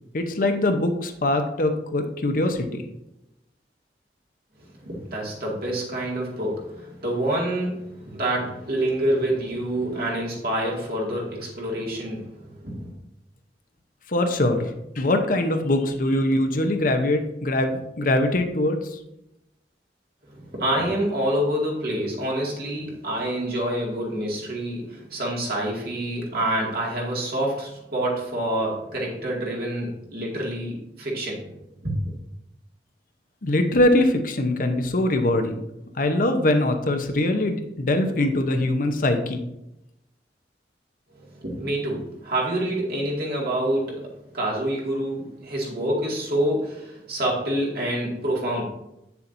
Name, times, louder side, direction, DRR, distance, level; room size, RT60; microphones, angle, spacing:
voice 1, 0.1-2.9 14.1-19.0 33.4-35.6 36.0-39.4, left 1 dB, 50° left, 0.8 m, -22 dB
voice 2, 4.8-12.9 20.3-32.1 41.2-48.7, right 1 dB, 60° right, 2.1 m, -27 dB
8.4 x 7.0 x 2.6 m
head